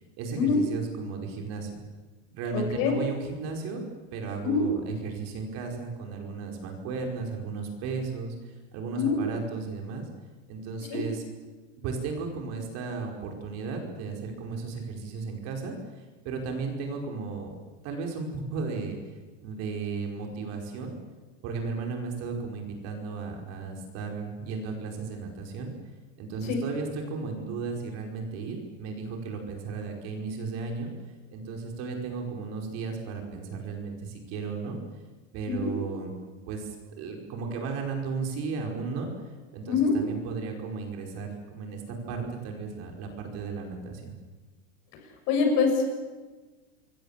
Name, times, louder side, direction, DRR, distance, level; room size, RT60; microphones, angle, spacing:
voice 1, 0.2-1.8 2.3-3.8 4.1-10.1 10.5-11.2 11.8-17.5 17.8-19.0 19.4-20.9 21.4-25.7 26.2-30.9 31.3-34.8 35.3-36.1 36.5-44.1, right 4 dB, 40° right, 2 dB, 5.1 m, -35 dB
voice 2, 2.5-2.9 4.4-4.6 8.9-9.2 10.9-11.0 26.5-26.6 35.5-35.7 39.7-39.9 45.3-45.8, left 5 dB, 45° left, 3 dB, 7.1 m, -24 dB
26.5 x 22.5 x 7.4 m, 1.3 s
supercardioid pair, 150°, 38 cm